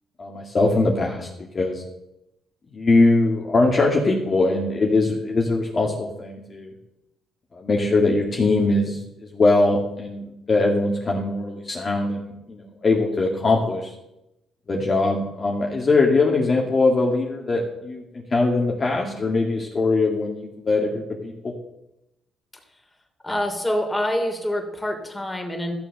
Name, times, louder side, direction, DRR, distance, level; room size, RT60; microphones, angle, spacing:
voice 1, 0.2-1.3 1.5-1.8 2.7-6.7 7.5-13.9 14.7-21.5, left 2 dB, 35° left, 0 dB, 2.1 m, -21 dB
voice 2, 23.2-25.7, left 1 dB, 15° left, 3 dB, 3.1 m, -26 dB
14.0 x 7.0 x 6.6 m, 0.90 s
cardioid pair, 90°, 0 cm